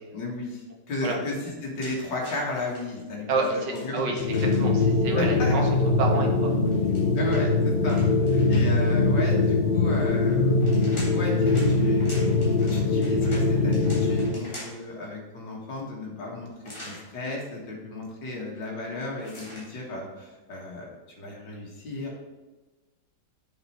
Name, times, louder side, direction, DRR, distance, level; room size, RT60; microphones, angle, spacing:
voice 1, 0.1-4.6 5.1-5.5 7.2-12.2 12.7-22.2, left 2 dB, 70° left, -2 dB, 2.4 m, -34 dB
sound 1, 1.8-2.8 3.7-4.8 6.6-8.9 10.3-14.9 16.6-17.0 19.2-19.7, equal, 15° left, 3.1 m, -44 dB
voice 2, 3.3-5.6 6.0-6.5, right 3 dB, 75° right, 1 dB, 2.1 m, -29 dB
sound 2, 4.1-14.4, left 3 dB, 50° left, 0.6 m, -22 dB
7.9 x 6.8 x 4.3 m, 1.2 s
omnidirectional pair, 2.0 m